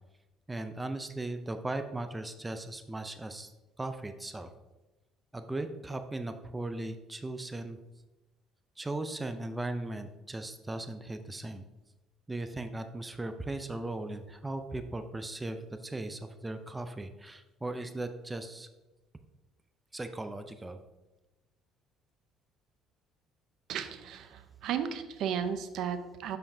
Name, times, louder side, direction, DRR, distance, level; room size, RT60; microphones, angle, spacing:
voice 1, 0.5-3.5 3.8-4.5 5.3-7.8 8.8-11.6 12.3-18.7 19.9-20.8, right 2 dB, 15° right, 8 dB, 0.4 m, -38 dB
voice 2, 23.7-26.4, right 8 dB, 65° right, 10 dB, 0.5 m, -34 dB
6.5 x 5.7 x 2.7 m, 1.1 s
cardioid pair, 105°, 0 cm